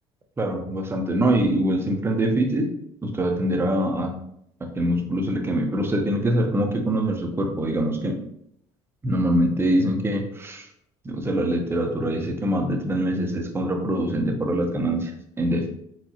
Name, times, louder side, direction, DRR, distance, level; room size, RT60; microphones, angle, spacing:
voice 1, 0.4-2.7 3.0-4.1 4.8-8.2 9.0-10.7 11.0-15.7, right 1 dB, 20° right, 3 dB, 0.8 m, -24 dB
4.6 x 3.8 x 2.8 m, 0.73 s
cardioid pair, 110°, 12 cm